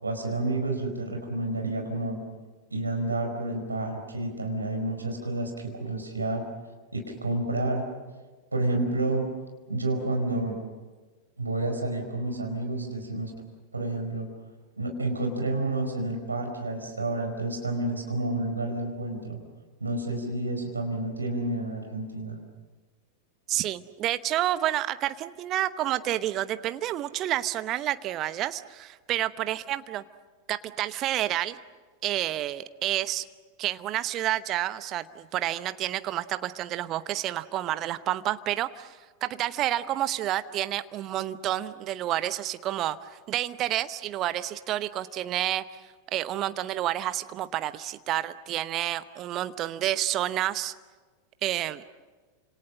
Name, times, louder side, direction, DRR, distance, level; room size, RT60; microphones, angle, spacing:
voice 1, 0.0-2.2 2.7-6.4 6.9-7.8 8.5-9.3 9.7-10.6 11.4-13.3 13.7-14.3 14.8-19.4 19.8-22.4, right 2 dB, 80° right, 3 dB, 4.9 m, -30 dB
voice 2, 23.5-30.0 30.5-31.6 32.0-33.2 33.6-45.6 46.1-50.7 51.4-51.8, right 13 dB, 35° right, 13 dB, 0.9 m, -29 dB
29.5 x 27.0 x 6.3 m, 1.3 s
figure-of-eight pair, 90°, 0 cm